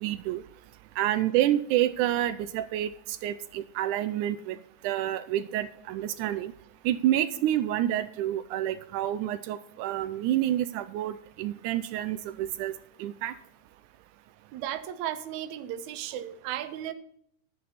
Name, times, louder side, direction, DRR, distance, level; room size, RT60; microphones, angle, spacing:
voice 1, 0.0-0.4 1.0-2.9 3.2-4.6 4.8-6.5 6.9-12.7 13.0-13.3, right 12 dB, 85° right, 12 dB, 1.8 m, -28 dB
voice 2, 14.5-16.9, right 11 dB, 70° right, 9 dB, 1.9 m, -35 dB
11.5 x 9.5 x 4.1 m, 0.69 s
omnidirectional pair, 4.0 m